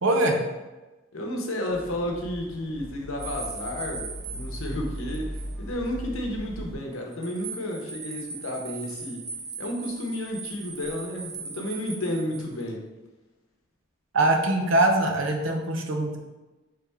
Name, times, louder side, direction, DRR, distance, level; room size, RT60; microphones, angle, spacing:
voice 1, 0.0-0.4 14.1-16.2, right 2 dB, 65° right, 3 dB, 0.7 m, -22 dB
voice 2, 1.1-9.3 9.6-12.8, left 1 dB, 80° left, 1 dB, 0.8 m, -32 dB
sound 1, 1.7-6.8, equal, 40° right, 1.1 m, -38 dB
sound 2, 3.2-5.5 5.8-5.9 6.9-12.6, right 4 dB, 15° right, 0.4 m, -39 dB
4.3 x 3.5 x 3.5 m, 1.1 s
head